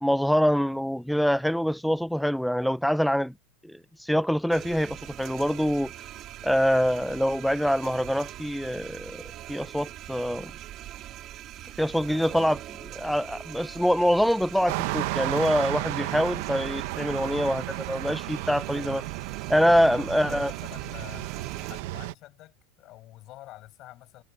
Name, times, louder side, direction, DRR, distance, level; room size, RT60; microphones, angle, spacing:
voice 1, 0.0-3.3 3.6-5.9 6.4-9.2 9.5-10.5 11.8-19.0 19.5-20.5, equal, ahead, 0.6 m, -25 dB
sound 1, 4.5-21.8, right 13 dB, 45° right, 2.8 m, -42 dB
sound 2, 14.7-22.1, right 21 dB, 70° right, 1.2 m, -33 dB
voice 2, 16.9-17.2 19.5-24.2, left 16 dB, 50° left, 6.4 m, -47 dB
supercardioid pair, 110°, 0 cm